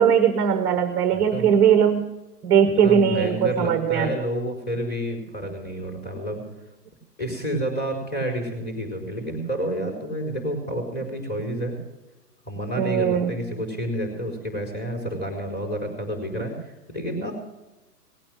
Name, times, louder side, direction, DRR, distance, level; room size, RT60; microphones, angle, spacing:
voice 1, 0.0-2.1 2.4-4.1 12.8-13.3, right 8 dB, 15° right, 9 dB, 0.6 m, -19 dB
voice 2, 1.1-1.5 2.8-6.4 7.2-11.8 12.4-17.3, right 1 dB, 20° left, 3 dB, 4.5 m, -29 dB
18.5 x 8.8 x 6.3 m, 1.0 s
hypercardioid pair, 135°, 47 cm